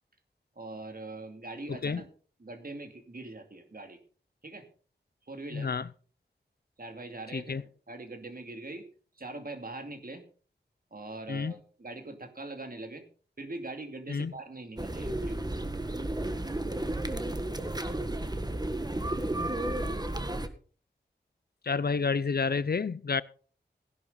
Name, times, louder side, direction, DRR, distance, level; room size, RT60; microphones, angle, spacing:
voice 1, 0.6-2.1 2.4-4.0 4.4-4.7 5.3-5.7 6.8-8.8 9.1-10.2 10.9-13.0 13.4-15.4, right 2 dB, 55° right, 2.6 m, -42 dB
voice 2, 5.5-5.9 7.3-7.6 11.3-11.5 14.1-14.3 21.6-23.2, left 5 dB, 60° left, 0.6 m, -29 dB
sound 1, 14.8-20.5, right 1 dB, 20° right, 1.5 m, -32 dB
16.5 x 11.0 x 3.9 m
wide cardioid pair, 50°, 18 cm